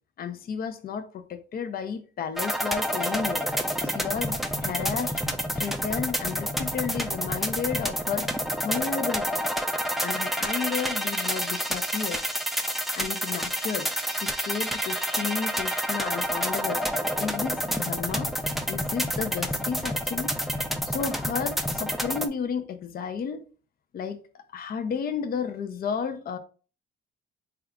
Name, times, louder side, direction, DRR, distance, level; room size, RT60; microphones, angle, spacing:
voice 1, 0.2-3.4 3.8-5.2 5.5-8.3 8.6-9.5 10.0-12.2 13.0-16.9 17.2-18.3 18.7-20.4 20.8-23.4 23.9-26.4, left 6 dB, 50° left, 0.5 m, -32 dB
sound 1, 2.4-22.3, equal, ahead, 0.4 m, -29 dB
3.6 x 2.3 x 3.5 m
cardioid pair, 90°, 20 cm